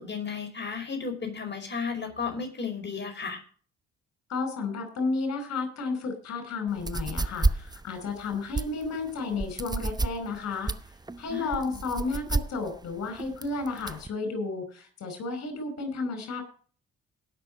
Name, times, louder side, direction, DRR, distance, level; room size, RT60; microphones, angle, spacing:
voice 1, 0.0-3.4 11.3-11.6, left 5 dB, 40° left, 5 dB, 5.1 m, -34 dB
voice 2, 4.3-16.4, left 3 dB, 65° left, 7 dB, 4.8 m, -32 dB
sound 1, 6.7-14.1, right 3 dB, 15° right, 0.9 m, -30 dB
18.0 x 6.2 x 5.1 m, 0.42 s
hypercardioid pair, 50°, 29 cm